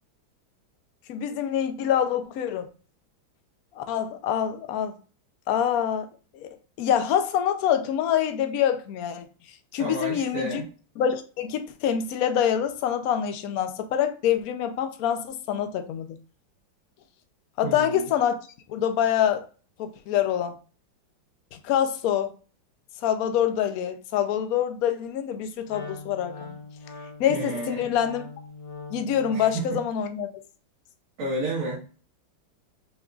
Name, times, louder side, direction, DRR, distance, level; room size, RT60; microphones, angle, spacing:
voice 1, 1.1-2.7 3.8-4.9 5.5-6.1 6.3-6.5 6.8-9.3 9.7-10.6 11.0-16.2 17.6-18.4 18.7-19.5 19.8-20.6 21.5-22.3 23.0-26.6 27.2-28.2 28.9-30.3, left 9 dB, 70° left, 0.8 m, -25 dB
voice 2, 9.8-10.7 17.6-18.1 27.3-27.9 29.3-29.8 31.2-31.8, right 2 dB, 80° right, 2.3 m, -31 dB
Wind instrument woodwind instrument, 25.7-29.7, left 4 dB, 55° left, 1.5 m, -41 dB
5.8 x 3.8 x 2.3 m
omnidirectional pair, 2.2 m